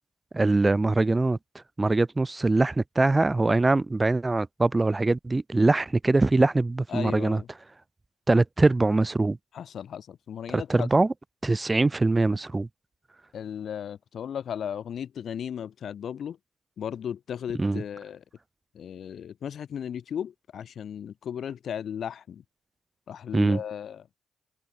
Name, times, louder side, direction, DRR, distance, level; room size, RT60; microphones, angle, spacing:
voice 1, 0.3-1.4 1.8-7.4 8.3-9.4 10.5-11.1 11.4-12.7 17.6-17.8 23.3-23.6, right 2 dB, 20° right, 4.8 m, -23 dB
voice 2, 6.9-7.5 9.5-11.0 13.3-16.4 16.8-18.2 18.7-22.4 23.1-24.1, left 8 dB, 60° left, 7.2 m, -36 dB
cardioid pair, 90°, 0 cm